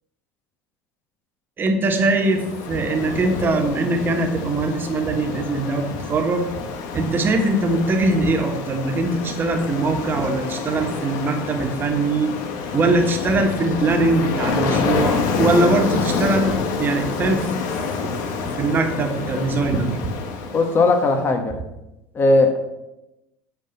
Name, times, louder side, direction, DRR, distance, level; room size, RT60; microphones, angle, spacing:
voice 1, 1.6-6.5 6.9-12.3 12.7-17.7 18.0-20.0, right 2 dB, 30° right, 4 dB, 1.6 m, -21 dB
Ocean, 2.0-21.1, left 5 dB, 65° left, 1.3 m, -28 dB
voice 2, 20.5-21.6 22.1-22.6, left 3 dB, 35° left, 5 dB, 1.3 m, -17 dB
9.0 x 4.5 x 6.7 m, 0.93 s
supercardioid pair, 105°, 7 cm